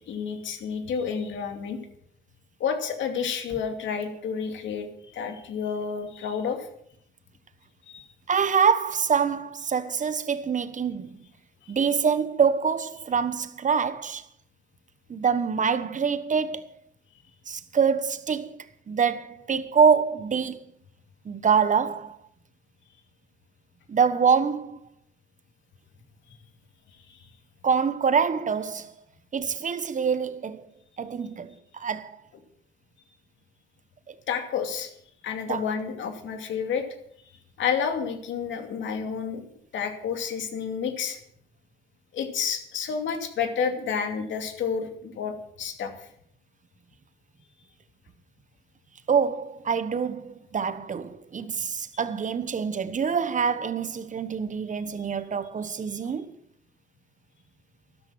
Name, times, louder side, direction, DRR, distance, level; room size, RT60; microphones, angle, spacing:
voice 1, 0.1-1.8 2.6-6.7 7.9-8.1 27.1-27.3 34.3-34.9 35.2-36.9 37.6-39.4 39.7-41.2 42.1-45.9 51.9-52.0 55.9-56.1, left 6 dB, 75° left, 2.6 m, -30 dB
voice 2, 8.3-11.2 11.7-14.2 15.1-16.8 17.5-20.7 21.2-22.2 23.9-24.8 27.6-28.9 29.3-30.7 31.0-32.2 34.1-34.2 35.5-35.6 49.1-56.3, right 6 dB, 40° right, 1.2 m, -25 dB
13.0 x 12.0 x 6.2 m
cardioid pair, 90°, 20 cm